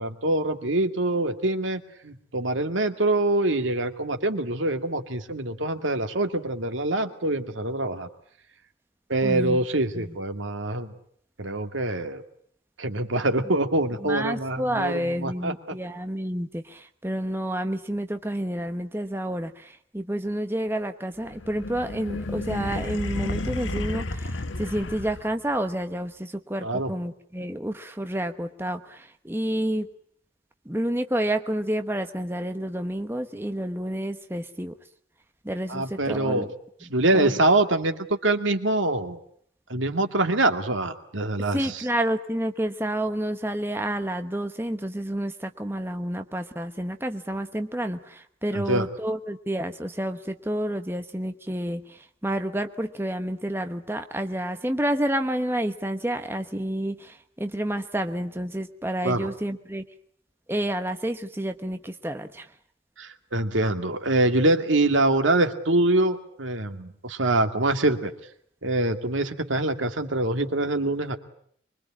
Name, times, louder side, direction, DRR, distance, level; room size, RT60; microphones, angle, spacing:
voice 1, 0.0-8.1 9.1-10.9 11.4-12.2 12.8-15.8 26.6-26.9 35.7-36.5 36.9-39.2 39.7-41.7 48.5-48.9 59.0-59.3 63.0-68.1 68.6-71.2, right 2 dB, 85° right, 6 dB, 2.3 m, -25 dB
voice 2, 9.2-9.6 9.9-10.2 13.4-13.5 14.0-29.9 30.6-34.8 35.4-36.5 37.1-37.3 41.5-59.8 60.5-62.5, right 1 dB, 10° right, 7 dB, 1.1 m, -29 dB
sound 1, 21.3-25.5, left 2 dB, 80° left, 1.4 m, -32 dB
24.5 x 23.5 x 8.7 m, 0.65 s
head